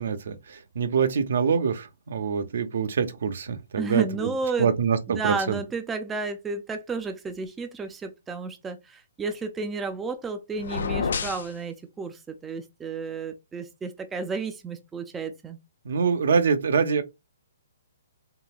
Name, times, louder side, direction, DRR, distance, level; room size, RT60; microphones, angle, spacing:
voice 1, 0.0-4.3 4.6-5.6 15.8-17.0, right 6 dB, 65° right, 0.6 m, -25 dB
voice 2, 3.8-4.7 5.1-15.6, right 4 dB, 10° right, 0.3 m, -32 dB
sound 1, 10.6-11.5, left 5 dB, 70° left, 0.5 m, -28 dB
3.7 x 2.1 x 2.4 m
hypercardioid pair, 160°, 0 cm